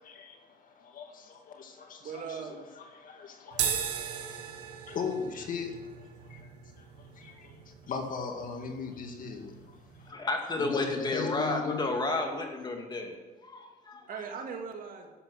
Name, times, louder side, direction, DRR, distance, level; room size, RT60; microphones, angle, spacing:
voice 1, 0.0-2.4 2.8-3.8 4.9-5.8 6.3-6.4 7.2-10.1 10.6-11.8, left 5 dB, 55° left, 4 dB, 2.0 m, -38 dB
voice 2, 1.8-2.7 14.1-15.1, right 6 dB, 55° right, 3 dB, 2.2 m, -40 dB
sound 1, 3.5-10.1, right 8 dB, 85° right, 1.9 m, -38 dB
voice 3, 10.1-13.1 13.4-14.1, left 2 dB, 25° left, 2 dB, 2.5 m, -32 dB
12.0 x 8.1 x 6.5 m, 1.3 s
cardioid pair, 110°, 17 cm